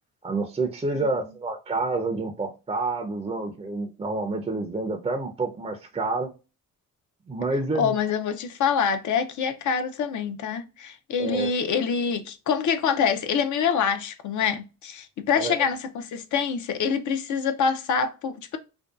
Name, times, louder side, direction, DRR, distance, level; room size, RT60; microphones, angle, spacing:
voice 1, 0.2-6.3 7.3-7.9 11.2-11.5 15.4-15.5, right 3 dB, 15° right, 0.4 m, -28 dB
voice 2, 7.7-18.6, left 6 dB, 60° left, 0.5 m, -25 dB
2.6 x 2.2 x 2.3 m
cardioid pair, 90°, 34 cm